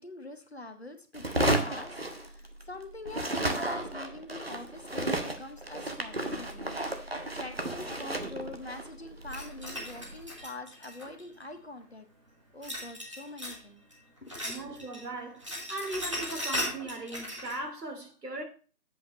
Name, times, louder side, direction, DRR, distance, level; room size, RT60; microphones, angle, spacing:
voice 1, 0.0-12.1 12.5-13.9 14.2-14.3 14.8-14.9, left 2 dB, 40° left, 0.9 m, -44 dB
sound 1, 1.1-2.8 3.0-10.3, right 1 dB, 40° right, 0.8 m, -33 dB
sound 2, 9.3-11.4 12.6-13.6 13.9-15.0 15.3-17.6, equal, 20° right, 1.4 m, -37 dB
voice 2, 14.4-18.4, right 2 dB, 80° right, 2.8 m, -38 dB
7.9 x 6.9 x 4.0 m
figure-of-eight pair, 175°, 47 cm